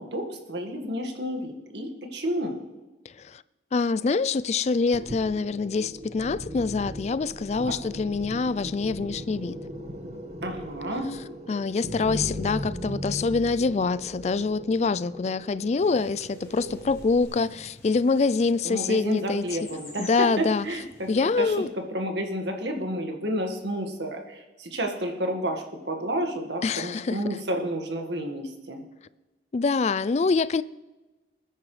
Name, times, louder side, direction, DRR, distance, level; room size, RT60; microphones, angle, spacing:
voice 1, 0.0-2.6 7.5-7.7 10.4-11.1 18.6-21.6 21.9-28.8, equal, 80° right, 1.8 m, -31 dB
voice 2, 3.7-9.6 11.5-19.4 20.0-20.7 21.1-21.7 26.6-27.2 29.5-30.6, left 4 dB, 40° left, 0.3 m, -25 dB
sound 1, 4.9-17.2, equal, 40° right, 1.4 m, -38 dB
sound 2, 15.8-21.6, left 2 dB, 15° left, 3.4 m, -50 dB
20.5 x 10.0 x 3.3 m
head